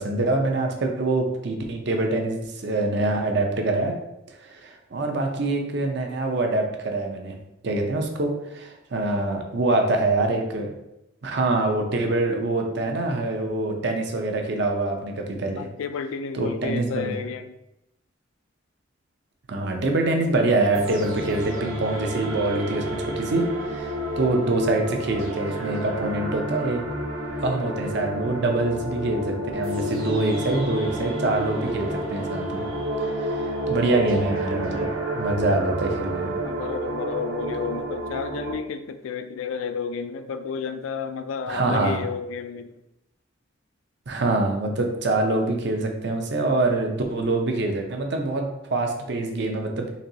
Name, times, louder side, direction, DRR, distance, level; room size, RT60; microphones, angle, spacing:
voice 1, 0.0-4.0 4.4-7.4 7.6-10.7 11.2-15.6 16.4-17.2 19.5-26.8 27.4-32.6 33.2-34.9 35.1-36.3 41.5-42.0 44.1-49.9, right 2 dB, 55° right, 3 dB, 0.6 m, -25 dB
voice 2, 15.6-17.6 36.4-42.7, left 6 dB, 80° left, 10 dB, 0.4 m, -31 dB
sound 1, 20.7-38.5, right 1 dB, 90° right, 0.8 m, -30 dB
4.1 x 3.0 x 2.7 m, 0.87 s
head